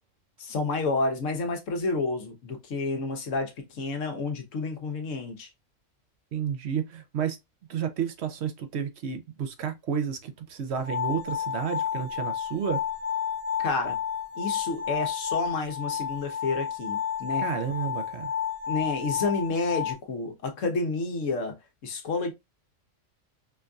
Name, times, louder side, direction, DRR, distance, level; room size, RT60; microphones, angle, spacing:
voice 1, 0.4-5.5 13.6-14.0 14.4-17.5 18.7-22.3, left 3 dB, 75° left, 1.2 m, -30 dB
voice 2, 6.3-7.4 7.7-12.8 17.4-18.3, right 7 dB, 60° right, 0.8 m, -31 dB
sound 1, 10.7-19.9, left 8 dB, 85° right, 1.4 m, -31 dB
4.5 x 2.5 x 2.3 m
omnidirectional pair, 1.4 m